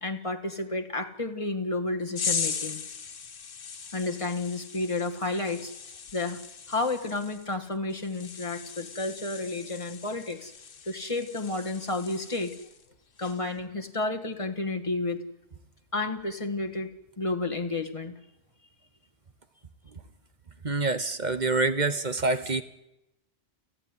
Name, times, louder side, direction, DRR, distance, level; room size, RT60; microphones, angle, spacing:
voice 1, 0.0-2.8 3.9-5.7 6.1-6.4 6.7-10.5 10.9-12.5 13.2-15.2 15.9-16.9 17.2-18.1, left 2 dB, 25° left, 4 dB, 1.8 m, -31 dB
sound 1, 2.2-12.9 13.2-13.5, left 6 dB, 85° left, 1.7 m, -38 dB
voice 2, 20.6-22.6, right 3 dB, 40° right, 10 dB, 1.3 m, -26 dB
29.5 x 9.9 x 9.8 m, 0.87 s
omnidirectional pair, 1.3 m